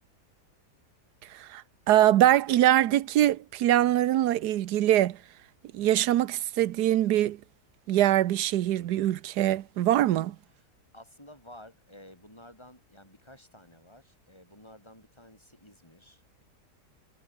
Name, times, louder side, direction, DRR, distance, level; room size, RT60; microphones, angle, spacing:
voice 1, 1.9-5.2 5.7-7.4 7.9-10.3, right 13 dB, 85° right, 1.3 m, -23 dB
voice 2, 10.9-16.4, left 1 dB, 15° left, 7.7 m, -52 dB
omnidirectional pair, 1.7 m